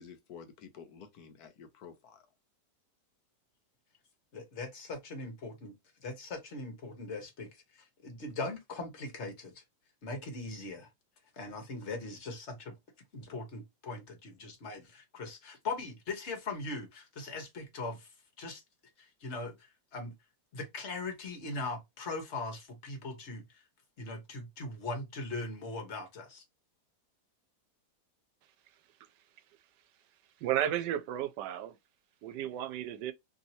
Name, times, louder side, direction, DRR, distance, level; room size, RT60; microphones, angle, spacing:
voice 1, 0.0-2.3, left 6 dB, 70° left, 1.2 m, -51 dB
voice 2, 4.3-5.7 6.0-7.5 8.0-9.6 10.0-10.9 11.4-12.7 13.1-18.1 18.4-18.6 19.2-19.6 19.9-20.1 20.5-23.4 24.0-26.4, left 3 dB, 45° left, 1.3 m, -40 dB
voice 3, 30.4-31.8 32.2-33.1, right 11 dB, 90° right, 1.2 m, -33 dB
3.2 x 2.8 x 2.6 m
omnidirectional pair, 1.8 m